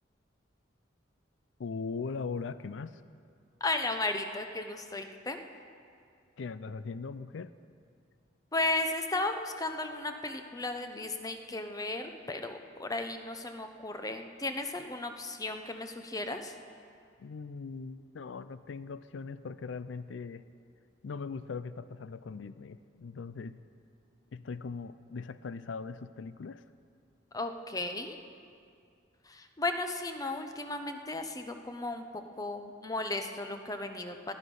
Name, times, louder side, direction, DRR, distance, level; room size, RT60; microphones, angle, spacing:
voice 1, 1.6-3.0 6.4-7.5 17.2-20.5 21.0-23.6 24.3-26.6, left 4 dB, 80° left, 14 dB, 0.4 m, -40 dB
voice 2, 3.6-5.4 8.5-16.5 27.3-28.2 29.3-32.0 32.4-34.3, left 2 dB, 20° left, 6 dB, 0.8 m, -35 dB
18.0 x 11.5 x 5.4 m, 2.3 s
head